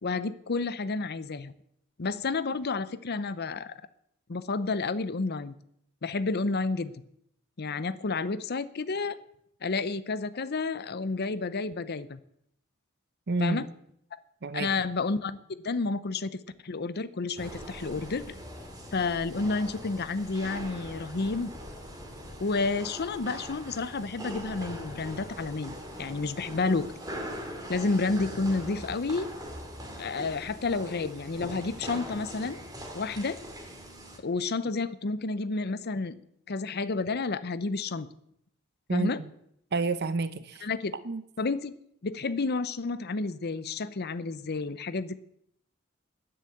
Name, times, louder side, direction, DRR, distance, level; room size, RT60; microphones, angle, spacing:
voice 1, 0.0-1.5 2.0-3.8 4.3-5.5 6.0-6.9 7.6-9.1 9.6-12.2 13.4-13.7 14.5-18.3 18.9-21.5 22.4-26.9 27.7-29.3 30.0-32.6 32.9-33.4 34.2-36.2 36.5-38.1 38.9-39.2 40.6-40.9 41.4-41.7 42.0-45.2, left 3 dB, 50° left, 15 dB, 0.7 m, -30 dB
voice 2, 13.3-13.7 14.4-14.7 38.9-39.1 39.7-40.7 41.0-41.2, right 3 dB, 55° right, 13 dB, 0.7 m, -29 dB
sound 1, 17.4-34.2, equal, 20° right, 2.2 m, -42 dB
10.5 x 10.5 x 7.9 m, 0.73 s
head